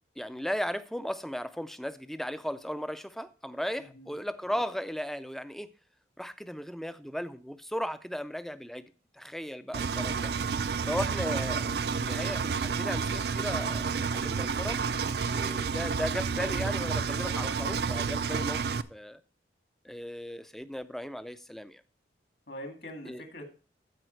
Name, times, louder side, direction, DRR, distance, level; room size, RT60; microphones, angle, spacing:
voice 1, 0.2-5.7 6.2-10.4 10.9-14.9 15.3-18.6 18.9-19.2 19.8-21.8 23.1-23.2, equal, ahead, 0.4 m, -36 dB
voice 2, 3.8-4.1 22.5-23.5, equal, 60° left, 2.2 m, -43 dB
Engine, 9.7-18.8, right 5 dB, 60° right, 0.4 m, -30 dB
14.5 x 4.9 x 4.5 m
head